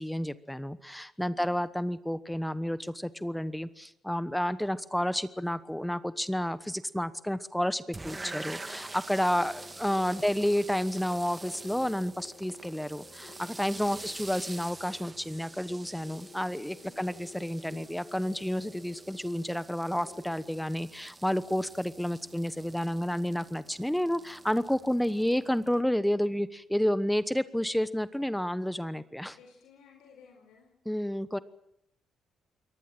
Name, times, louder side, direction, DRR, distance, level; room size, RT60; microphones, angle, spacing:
voice 1, 0.0-29.4 30.9-31.4, equal, 5° left, 15 dB, 1.1 m, -30 dB
sound 1, 7.9-25.8, right 2 dB, 20° right, 2.3 m, -47 dB
voice 2, 9.1-9.6 10.1-10.3 16.8-17.0 29.3-30.7, left 6 dB, 90° left, 3 dB, 4.6 m, -57 dB
sound 2, 9.3-20.6, left 4 dB, 65° left, 6.7 m, -53 dB
23.5 x 18.5 x 7.7 m, 0.79 s
cardioid pair, 90°, 0 cm